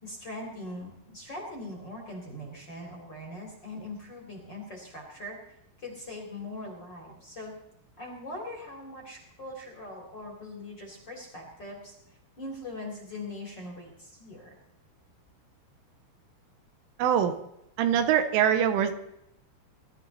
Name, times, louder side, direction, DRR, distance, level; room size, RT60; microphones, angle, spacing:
voice 1, 0.0-5.4 5.8-7.5 8.0-11.9 12.4-14.5, left 1 dB, 25° left, 0 dB, 3.4 m, -41 dB
voice 2, 17.0-17.3 17.8-18.9, right 9 dB, 80° right, 8 dB, 3.7 m, -23 dB
21.5 x 13.5 x 4.2 m, 0.79 s
omnidirectional pair, 5.5 m